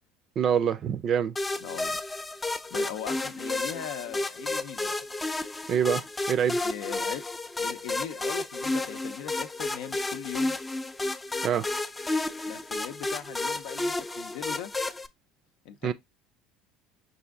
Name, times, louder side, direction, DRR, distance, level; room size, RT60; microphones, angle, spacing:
voice 1, 0.4-1.3 5.7-6.0 6.3-6.6 11.4-11.6 15.8-15.9, right 8 dB, 50° right, 0.4 m, -25 dB
sound 1, 1.4-15.1, left 2 dB, 15° left, 0.4 m, -32 dB
voice 2, 1.6-2.0 2.7-5.0 6.6-7.2 7.6-10.6 12.5-14.7 15.6-15.9, left 10 dB, 70° left, 0.6 m, -39 dB
5.6 x 2.6 x 3.4 m
hypercardioid pair, 80°, 0 cm